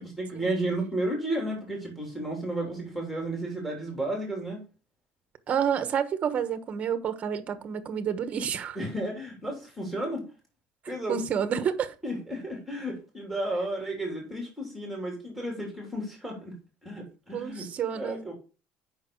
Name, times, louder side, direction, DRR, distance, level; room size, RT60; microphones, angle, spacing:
voice 1, 0.0-4.6 8.8-10.2 10.9-11.2 12.0-16.6 16.8-17.7 17.9-18.3, right 1 dB, ahead, 3.1 m, -33 dB
voice 2, 5.5-8.8 11.1-11.9 17.3-18.3, right 8 dB, 30° right, 1.1 m, -29 dB
8.1 x 5.8 x 4.7 m
cardioid pair, 160°, 4 cm